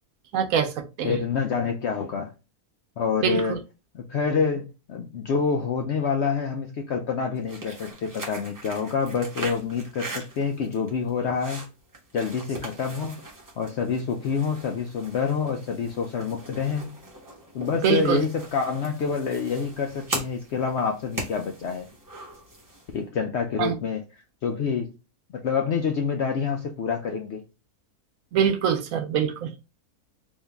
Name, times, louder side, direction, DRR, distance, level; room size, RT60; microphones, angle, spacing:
voice 1, 0.3-0.7 1.0-1.2 3.2-3.6 17.8-18.2 23.6-23.7 28.3-29.5, right 8 dB, 70° right, 1.0 m, -23 dB
voice 2, 1.0-2.3 3.0-3.5 3.9-11.7 12.1-13.2 13.6-16.9 17.5-21.9 22.9-24.9 25.3-27.4, left 5 dB, 65° left, 0.7 m, -27 dB
sound 1, 7.4-23.0, right 2 dB, 15° right, 0.7 m, -40 dB
3.6 x 2.6 x 3.4 m
omnidirectional pair, 1.6 m